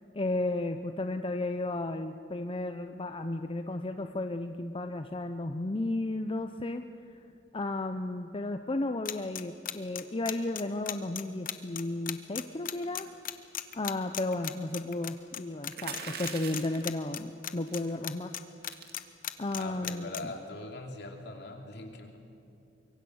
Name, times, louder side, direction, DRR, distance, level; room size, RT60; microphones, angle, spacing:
voice 1, 0.1-6.8 7.5-13.1 13.7-18.3 19.4-20.3, left 2 dB, 30° left, 7 dB, 0.6 m, -33 dB
sound 1, 9.0-15.4 15.6-16.0 16.2-17.8 18.0-20.2, left 11 dB, 50° left, 1.0 m, -36 dB
sound 2, 15.7-16.9 17.7-18.0 18.3-18.4 18.6-18.9 19.5-19.8, right 6 dB, 55° right, 2.3 m, -41 dB
voice 2, 19.6-22.2, left 2 dB, 65° left, 3 dB, 2.9 m, -42 dB
25.0 x 23.0 x 6.4 m, 2.7 s
head